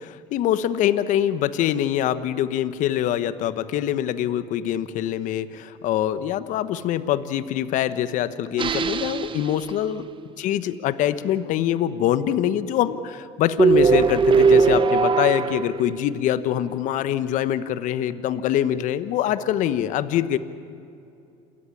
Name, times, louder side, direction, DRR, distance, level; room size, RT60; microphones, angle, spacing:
voice 1, 0.0-10.1 10.4-20.4, left 11 dB, 65° left, 14 dB, 1.1 m, -24 dB
sound 1, 8.6-9.9 13.6-16.3, right 5 dB, 35° right, 1.0 m, -20 dB
28.0 x 14.0 x 9.8 m, 2.6 s
supercardioid pair, 75°, 14 cm